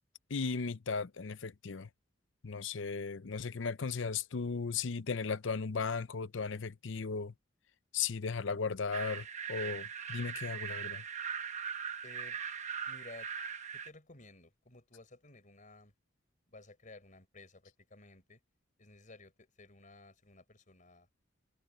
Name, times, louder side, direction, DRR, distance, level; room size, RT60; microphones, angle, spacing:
voice 1, 0.3-1.9 2.4-7.3 7.9-11.0, left 5 dB, 65° left, 0.7 m, -36 dB
sound 1, 8.9-13.9, right 7 dB, 35° right, 1.0 m, -40 dB
voice 2, 12.0-12.4 12.9-13.3 13.7-15.9 16.5-18.4 18.8-21.1, left 2 dB, 40° left, 4.4 m, -55 dB
head